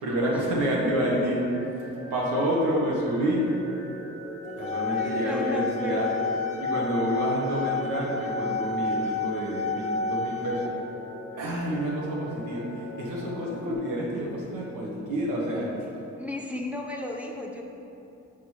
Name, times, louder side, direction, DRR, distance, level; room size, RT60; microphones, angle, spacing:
voice 1, 0.0-1.5 2.1-3.5 4.6-6.1 6.6-10.8 11.3-15.7, equal, 85° right, -4 dB, 1.5 m, -28 dB
sound 1, 1.2-13.7, right 1 dB, 65° right, 1.3 m, -40 dB
sound 2, 4.5-10.7, left 4 dB, 25° left, 0.4 m, -30 dB
voice 2, 4.9-6.1 15.5-15.7 16.2-17.6, left 1 dB, 5° right, 0 dB, 0.8 m, -34 dB
6.8 x 3.3 x 5.8 m, 2.8 s
cardioid pair, 90°, 30 cm